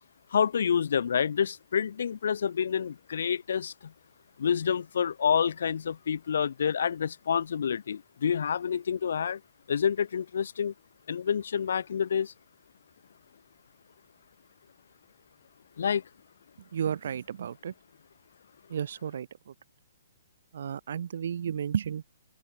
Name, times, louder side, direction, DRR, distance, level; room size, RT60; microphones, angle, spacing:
voice 1, 0.3-3.9 4.4-9.4 9.7-10.7 11.1-12.3 15.8-16.0, left 7 dB, 70° left, 3.4 m, -28 dB
voice 2, 16.7-17.7 18.7-19.3 20.5-22.0, right 8 dB, 60° right, 2.9 m, -32 dB
open air
hypercardioid pair, 155°, 0 cm